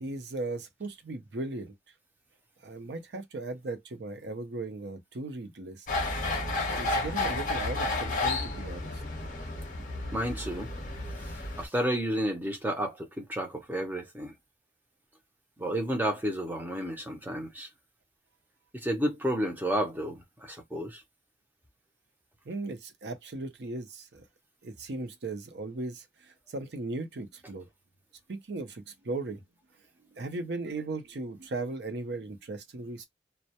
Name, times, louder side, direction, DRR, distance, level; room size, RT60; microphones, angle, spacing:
voice 1, 0.0-1.7 2.6-5.9 6.7-9.0 22.5-24.2 24.6-27.7 28.3-29.4 30.1-33.1, right 2 dB, 70° right, 0.5 m, -37 dB
sound 1, 5.9-11.6, left 2 dB, 45° left, 0.6 m, -32 dB
voice 2, 10.1-10.7 11.2-14.3 15.6-17.7 18.7-21.0, equal, 10° right, 0.5 m, -31 dB
2.1 x 2.0 x 2.8 m
head